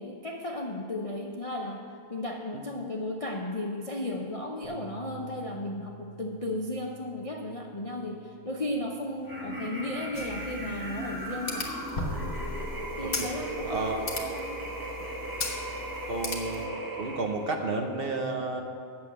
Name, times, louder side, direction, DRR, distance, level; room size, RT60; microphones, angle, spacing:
voice 1, 0.0-1.8 2.1-11.7 13.0-14.7, left 1 dB, 40° left, 0 dB, 0.5 m, -35 dB
sound 1, 4.6-10.9, right 11 dB, 70° right, 1.6 m, -51 dB
sound 2, 9.2-17.6, right 1 dB, 15° right, 1.2 m, -37 dB
sound 3, 10.1-16.7, left 3 dB, 60° left, 1.6 m, -37 dB
voice 2, 13.6-14.0 16.1-16.7 17.0-18.6, right 3 dB, 50° right, 3 dB, 0.9 m, -31 dB
8.8 x 7.1 x 7.3 m, 2.6 s
omnidirectional pair, 1.5 m